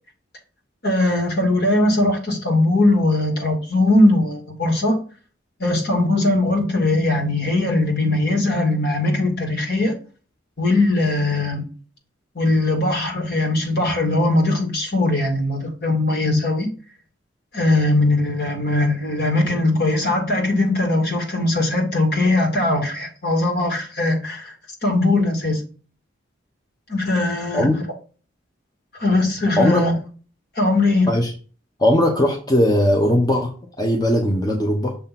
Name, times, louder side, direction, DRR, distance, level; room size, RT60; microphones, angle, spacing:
voice 1, 0.8-5.0 5.6-9.9 10.6-11.7 12.4-16.7 17.5-24.5 24.8-25.6 26.9-27.7 28.9-29.9 30.6-31.1, left 2 dB, 55° left, 2 dB, 1.9 m, -20 dB
voice 2, 31.8-35.0, left 1 dB, 20° left, 1 dB, 0.8 m, -19 dB
6.7 x 2.9 x 5.8 m, 0.37 s
head